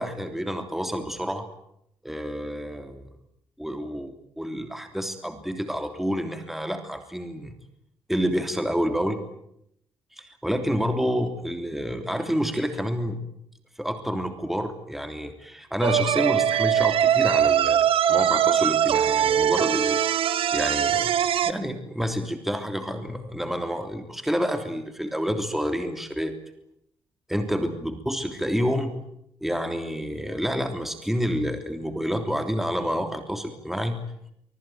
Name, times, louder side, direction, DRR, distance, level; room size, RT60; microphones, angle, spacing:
voice 1, 0.0-1.5 2.0-3.1 3.6-7.5 8.1-9.2 10.1-13.2 13.8-20.0 20.5-21.1 21.4-26.3 27.3-29.0 29.4-34.0, equal, 5° right, 6 dB, 3.2 m, -28 dB
sound 1, 15.8-21.5, right 9 dB, 75° right, 1.3 m, -21 dB
24.5 x 20.5 x 9.3 m, 0.76 s
cardioid pair, 85°, 9 cm